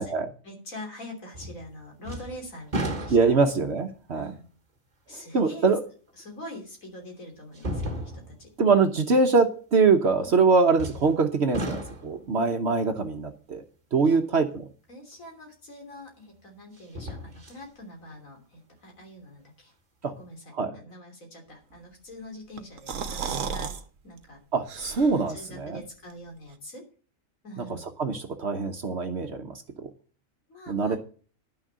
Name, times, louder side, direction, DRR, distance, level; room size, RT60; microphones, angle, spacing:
voice 1, 0.4-3.4 4.1-4.5 5.1-5.7 6.2-8.5 10.2-10.3 14.0-14.2 14.9-19.7 20.0-23.7 24.0-24.4 25.3-26.9 27.4-27.8 30.5-31.0, left 1 dB, 85° left, 1 dB, 3.6 m, -44 dB
sound 1, 1.3-1.7 2.0-3.6 4.3-4.4 6.2-6.3 7.5-8.5 10.8-11.2 11.5-12.2 15.2-15.3 16.8-17.6 18.1-18.2, right 1 dB, 35° right, 1.4 m, -34 dB
voice 2, 3.1-4.3 5.1-5.8 8.6-13.6 13.9-14.6 20.0-20.1 20.5-20.7 24.5-25.8 28.0-29.9 30.7-31.0, right 4 dB, 55° right, 6 dB, 1.2 m, -23 dB
sound 2, 22.6-23.8 24.2-24.3 24.7-25.3, right 6 dB, 75° right, 1.3 m, -33 dB
11.0 x 6.4 x 7.4 m, 0.40 s
omnidirectional pair, 1.4 m